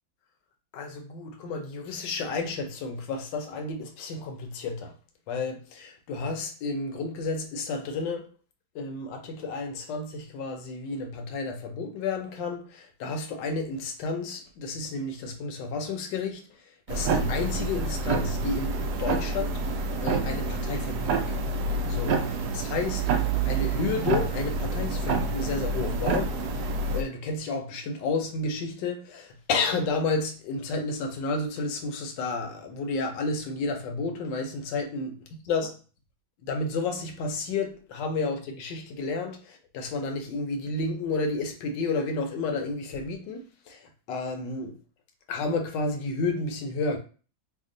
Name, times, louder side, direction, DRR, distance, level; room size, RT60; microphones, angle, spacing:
voice 1, 0.7-4.9 5.3-8.3 8.7-16.4 16.9-19.6 20.0-21.5 21.9-23.0 23.5-26.7 26.9-35.1 35.5-35.7 36.4-43.8 44.1-44.8 45.3-47.0, left 3 dB, 75° left, 1.3 m, -31 dB
sound 1, 16.9-27.0, right 3 dB, 70° right, 1.0 m, -28 dB
3.5 x 2.3 x 3.7 m
omnidirectional pair, 2.1 m